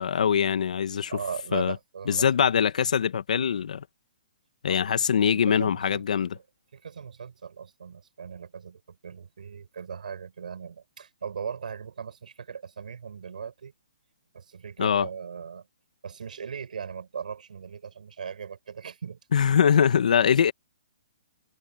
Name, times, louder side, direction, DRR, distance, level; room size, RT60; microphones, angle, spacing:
voice 1, 0.0-1.1 1.5-1.7 2.1-3.8 4.6-6.3 14.8-15.1 19.3-20.5, left 7 dB, 60° left, 1.5 m, -23 dB
voice 2, 1.1-2.3 4.7-6.0 6.3-6.4 6.7-13.7 14.3-15.7 16.0-19.2, right 6 dB, 70° right, 6.0 m, -38 dB
hypercardioid pair, 170°, 4 cm